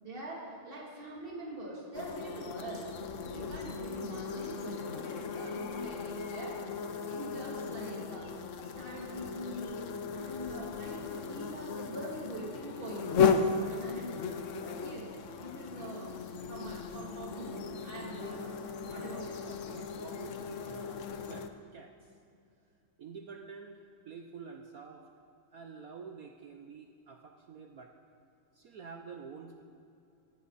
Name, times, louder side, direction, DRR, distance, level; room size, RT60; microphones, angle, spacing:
voice 1, 0.0-2.9 3.3-6.6 7.0-8.3 8.6-13.2 13.7-15.1 15.4-18.5 18.9-19.4, right 1 dB, 25° right, -4 dB, 3.0 m, -44 dB
sound 1, 1.9-21.5, left 5 dB, 80° left, 0.6 m, -36 dB
voice 2, 18.2-18.6 18.9-21.9 23.0-25.1 25.5-27.9 28.5-29.6, right 5 dB, 60° right, 4 dB, 0.9 m, -48 dB
18.5 x 14.5 x 4.2 m, 2.5 s
omnidirectional pair, 2.3 m